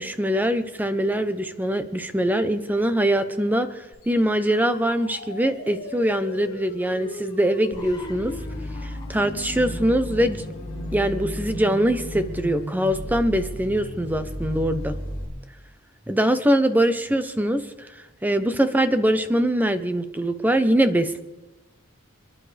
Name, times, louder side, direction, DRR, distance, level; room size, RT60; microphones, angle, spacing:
voice 1, 0.0-8.4 8.8-10.4 10.9-14.9 16.1-21.2, right 1 dB, 10° right, 9 dB, 0.8 m, -23 dB
sound 1, 3.9-15.3, equal, 55° left, 3.6 m, -37 dB
sound 2, 7.7-13.6, left 1 dB, 20° left, 0.9 m, -36 dB
28.0 x 11.0 x 3.4 m, 1.1 s
head